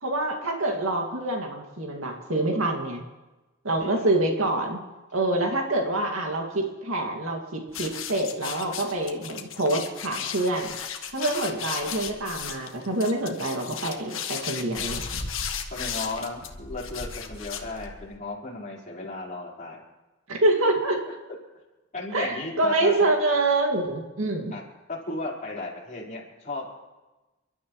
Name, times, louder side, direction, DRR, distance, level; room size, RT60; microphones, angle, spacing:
voice 1, 0.0-3.0 3.6-4.8 5.1-10.8 11.1-15.0 20.3-21.0 22.1-24.5, right 2 dB, 80° right, 0 dB, 2.4 m, -26 dB
voice 2, 3.8-4.2 15.7-19.8 21.9-23.1 24.5-24.6 24.9-26.7, left 2 dB, 35° left, -4 dB, 4.6 m, -35 dB
sound 1, 7.7-18.2, left 7 dB, 70° left, 1.5 m, -35 dB
30.0 x 12.5 x 3.2 m, 1.1 s
head